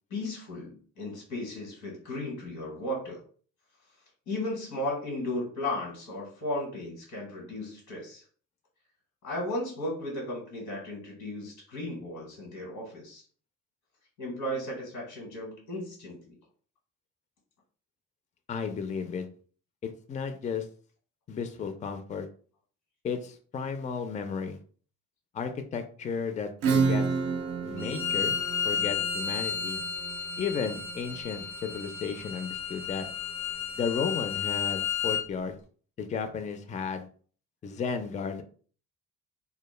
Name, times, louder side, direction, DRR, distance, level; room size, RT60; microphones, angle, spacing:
voice 1, 0.1-3.2 4.3-8.2 9.2-13.2 14.2-16.4, left 1 dB, 90° left, -2 dB, 1.1 m, -35 dB
voice 2, 18.5-19.3 19.8-20.7 21.3-22.3 23.0-24.6 25.3-27.0 27.6-28.4 28.6-29.8 30.4-33.1 33.8-35.6 36.0-37.0 37.6-38.4, left 6 dB, 25° left, 8 dB, 0.3 m, -33 dB
Acoustic guitar / Strum, 26.6-32.0, right 5 dB, 55° right, 0.4 m, -31 dB
Bowed string instrument, 27.8-35.2, left 8 dB, 70° left, 0.6 m, -32 dB
2.1 x 2.1 x 3.1 m, 0.43 s
cardioid pair, 90°, 30 cm